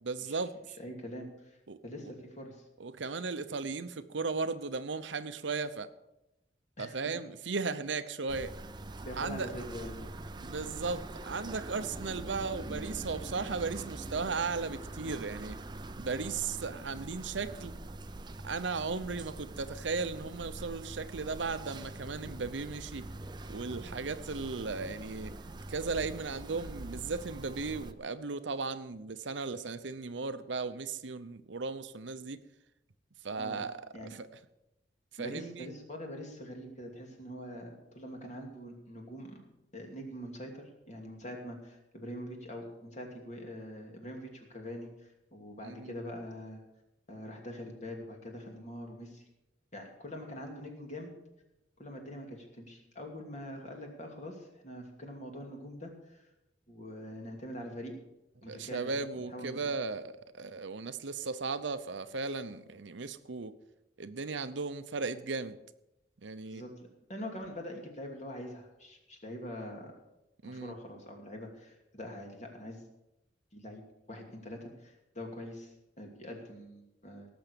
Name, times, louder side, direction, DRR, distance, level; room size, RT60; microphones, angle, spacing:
voice 1, 0.0-0.5 1.7-1.8 2.8-5.9 6.8-8.5 9.1-9.5 10.4-15.6 16.0-17.8 18.4-23.1 23.5-25.3 25.7-32.4 33.2-34.3 35.2-35.7 45.6-45.9 58.5-63.5 64.0-65.6 66.2-66.6 70.4-70.7, right 4 dB, 80° right, 12 dB, 0.8 m, -36 dB
voice 2, 0.7-1.6 1.8-2.7 6.8-7.0 9.0-10.1 33.4-33.7 33.9-34.2 35.2-39.4 39.7-46.6 47.1-49.2 49.7-51.1 51.8-56.3 56.7-57.9 58.4-58.9 59.3-59.6 66.5-69.9 70.4-72.8 73.5-73.8 74.1-77.3, equal, 40° left, 2 dB, 2.8 m, -44 dB
sound 1, 8.3-27.9, right 2 dB, 25° right, 0.6 m, -44 dB
18.0 x 7.0 x 6.9 m, 0.90 s
head